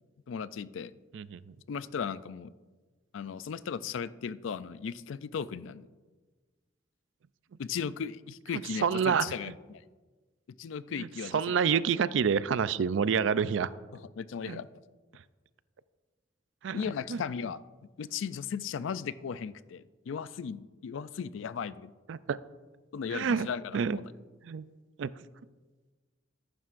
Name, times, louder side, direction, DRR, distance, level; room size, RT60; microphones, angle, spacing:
voice 1, 0.3-0.9 1.7-2.5 3.1-5.9 7.6-9.8 10.6-11.4 14.2-14.7 16.7-17.6 18.0-21.9 22.9-24.0, left 6 dB, 75° left, 16 dB, 0.4 m, -36 dB
voice 2, 1.1-1.6 8.8-9.3 11.0-11.1 11.3-13.7 14.5-14.6 16.6-16.8 17.1-17.2 22.1-22.4 23.1-23.5 23.7-24.0 24.4-24.7 25.0-25.1, right 6 dB, 70° right, 16 dB, 0.4 m, -28 dB
14.0 x 11.5 x 2.5 m, 1.3 s
head